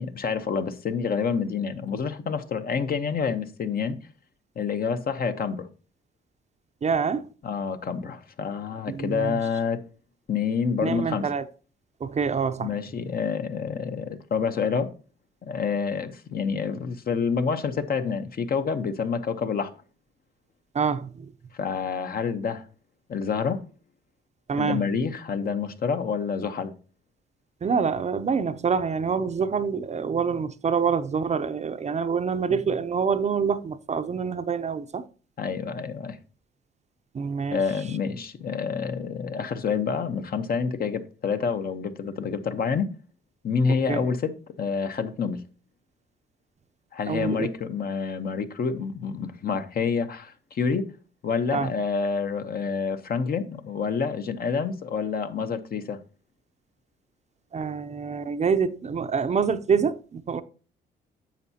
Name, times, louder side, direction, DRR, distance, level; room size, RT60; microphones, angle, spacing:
voice 1, 0.0-4.0 4.6-5.7 7.4-9.8 10.3-11.3 12.6-14.9 15.4-19.7 21.5-22.6 23.1-23.6 24.6-26.7 32.5-32.6 35.4-36.2 37.5-42.9 43.4-45.4 46.9-50.9 51.2-56.0, left 6 dB, 50° left, 0.9 m, -28 dB
voice 2, 6.8-7.3 8.9-9.4 10.8-11.4 12.0-12.7 20.7-21.3 24.5-24.8 27.6-35.0 37.1-37.6 43.7-44.0 47.1-47.5 51.5-51.7 57.5-60.4, right 6 dB, 35° right, 0.6 m, -26 dB
10.5 x 7.0 x 2.8 m
cardioid pair, 90°, 20 cm